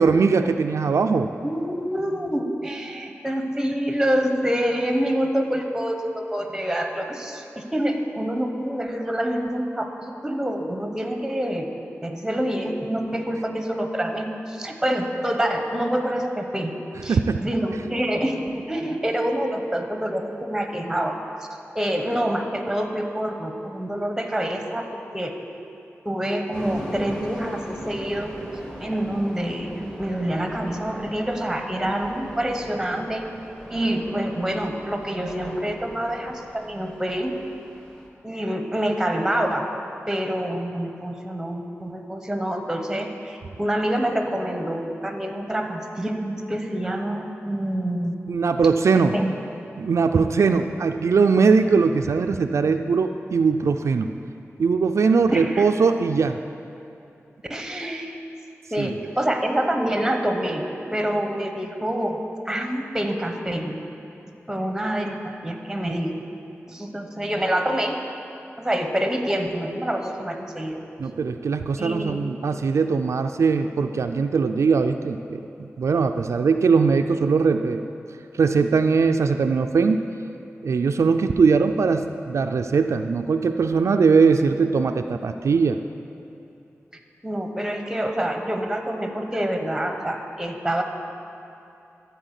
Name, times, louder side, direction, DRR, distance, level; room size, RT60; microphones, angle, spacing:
voice 1, 0.0-1.3 17.1-17.4 48.3-49.1 49.8-54.1 54.6-56.4 58.8-58.9 71.0-77.8 78.4-80.0 80.6-85.8, right 5 dB, 70° right, 6 dB, 0.3 m, -20 dB
voice 2, 1.4-11.6 12.0-16.7 17.0-21.1 21.7-24.8 25.1-25.3 26.0-28.3 28.8-33.3 33.7-37.3 38.2-39.7 40.1-48.2 48.9-49.4 55.3-55.7 57.5-58.2 58.7-62.2 62.4-63.8 64.5-66.1 66.7-68.0 68.6-70.8 71.8-72.2 87.2-90.8, right 1 dB, 10° right, 4 dB, 0.9 m, -26 dB
sound 1, 26.5-38.1, equal, 15° left, 1.3 m, -40 dB
13.0 x 4.3 x 8.1 m, 2.7 s
wide cardioid pair, 120°, 5 cm